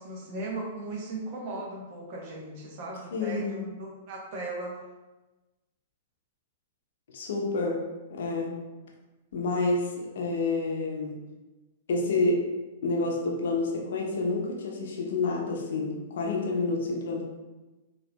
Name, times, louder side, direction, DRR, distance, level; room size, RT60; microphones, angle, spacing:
voice 1, 0.0-4.8, right 2 dB, 50° right, -2 dB, 0.9 m, -37 dB
voice 2, 3.1-3.6 7.1-7.8 8.1-8.6 9.3-11.2 11.9-12.5 12.8-17.2, left 3 dB, 65° left, 0 dB, 0.7 m, -28 dB
3.9 x 2.6 x 2.3 m, 1.1 s
hypercardioid pair, 110°, 0 cm